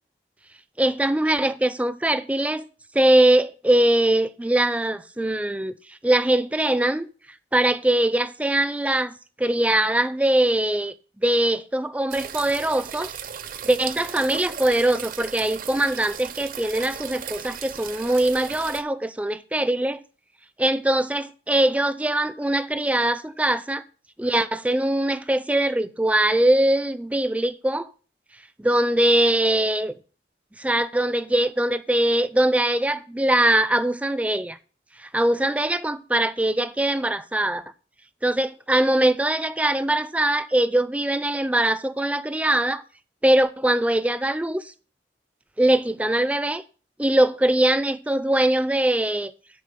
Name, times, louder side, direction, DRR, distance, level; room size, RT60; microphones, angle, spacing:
voice 1, 0.8-2.7 2.9-7.1 7.5-13.1 13.6-20.0 20.6-23.8 24.2-27.9 28.6-29.9 30.6-34.6 35.0-37.6 38.2-42.8 43.2-44.7 45.6-46.6 47.0-49.3, right 1 dB, 10° right, 0.4 m, -22 dB
sound 1, 12.1-18.8, right 8 dB, 50° right, 0.7 m, -36 dB
10.0 x 4.2 x 6.8 m
head